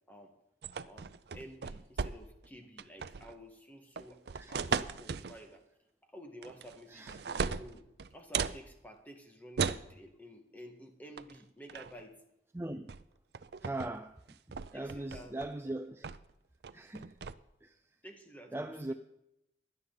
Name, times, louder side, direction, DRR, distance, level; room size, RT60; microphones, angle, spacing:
sound 1, 0.6-2.5 2.8-3.3 4.0-5.4 6.4-6.8 7.1-8.6 9.6-9.9 11.2-11.3 11.7-12.0 12.9-13.0 13.3-13.9 14.3-15.5 16.0-16.3 16.6-17.3, right 5 dB, 65° right, 0.5 m, -37 dB
voice 1, 0.9-4.2 4.5-5.7 6.1-12.2 14.7-15.4 18.0-18.9, equal, 10° left, 1.7 m, -52 dB
voice 2, 12.5-12.9 13.6-16.1 16.7-17.2 17.6-18.0 18.5-18.9, right 2 dB, 15° right, 0.4 m, -40 dB
16.5 x 11.0 x 4.0 m
head